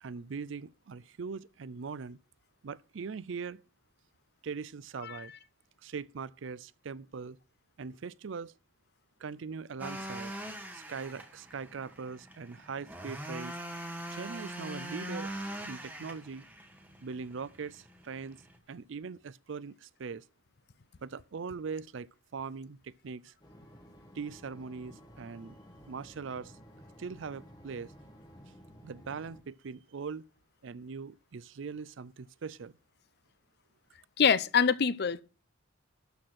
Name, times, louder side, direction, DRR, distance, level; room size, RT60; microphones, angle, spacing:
voice 1, 0.0-2.2 2.6-3.6 4.4-5.3 5.8-7.4 7.8-8.5 9.2-10.3 10.7-13.6 14.1-15.3 15.7-16.5 17.0-18.4 18.7-20.2 21.0-23.3 24.1-25.6 25.9-26.5 27.0-27.9 28.8-30.3 30.6-32.7, right 5 dB, 65° right, 0.5 m, -41 dB
sound 1, 9.8-18.6, right 1 dB, 10° right, 1.7 m, -42 dB
sound 2, 23.4-29.4, equal, 20° left, 1.6 m, -54 dB
voice 2, 34.2-35.2, left 6 dB, 55° left, 0.6 m, -25 dB
12.5 x 4.3 x 7.8 m
head